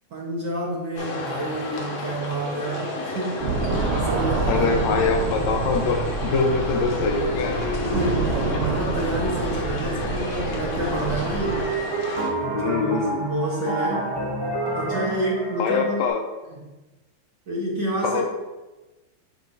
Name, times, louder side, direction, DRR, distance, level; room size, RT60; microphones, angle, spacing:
voice 1, 0.1-3.5 4.0-4.7 7.8-11.7 12.6-14.1 14.7-16.1 16.5-16.6 17.5-18.2, right 1 dB, 50° right, -6 dB, 1.4 m, -29 dB
sound 1, 1.0-12.3, left 2 dB, 60° left, 1.4 m, -31 dB
sound 2, 3.4-11.7, right 4 dB, 85° right, 2.2 m, -27 dB
voice 2, 4.5-7.6 12.5-13.2 15.6-16.2 18.0-18.2, left 4 dB, 80° left, 4 dB, 1.7 m, -23 dB
sound 3, 10.8-16.1, right 2 dB, 20° right, 0.6 m, -29 dB
9.3 x 4.6 x 2.7 m, 1.1 s
omnidirectional pair, 3.3 m